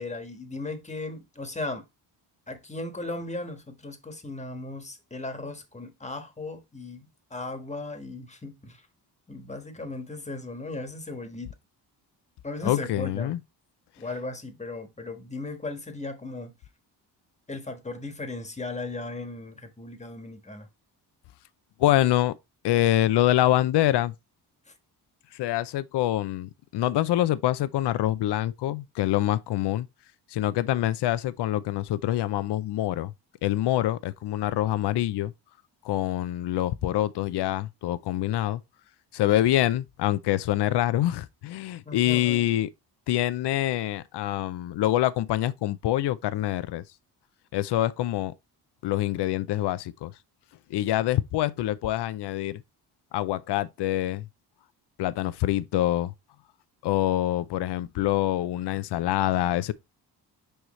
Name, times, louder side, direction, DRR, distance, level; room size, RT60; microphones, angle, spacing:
voice 1, 0.0-1.8 2.5-8.8 9.3-11.5 12.4-13.3 14.0-16.5 17.5-20.7 24.7-24.8 41.8-42.4, left 2 dB, 15° left, 1.4 m, -37 dB
voice 2, 12.6-13.4 21.8-22.3 22.6-24.1 25.3-29.9 30.3-33.1 33.4-35.3 35.8-38.6 39.1-42.7 43.1-46.8 47.5-48.3 48.8-50.1 50.7-52.6 53.1-54.3 55.0-56.1 56.8-59.7, left 14 dB, 75° left, 0.6 m, -25 dB
6.5 x 4.8 x 3.1 m
cardioid pair, 90°, 41 cm